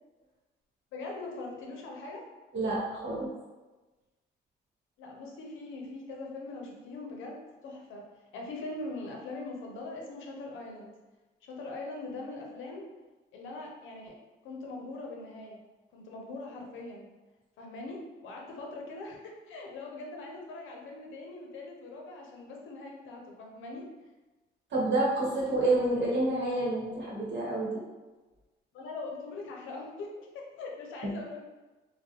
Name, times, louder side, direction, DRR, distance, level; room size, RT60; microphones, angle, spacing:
voice 1, 0.9-2.3 5.0-8.1 8.3-10.9 11.4-12.9 13.3-14.2 14.4-15.6 15.9-17.1 17.6-23.9 28.7-31.4, left 2 dB, 85° left, 0 dB, 0.6 m, -41 dB
voice 2, 2.5-3.3 24.7-27.8, right 2 dB, 65° right, -5 dB, 1.0 m, -28 dB
2.3 x 2.1 x 2.8 m, 1.2 s
cardioid pair, 90°, 20 cm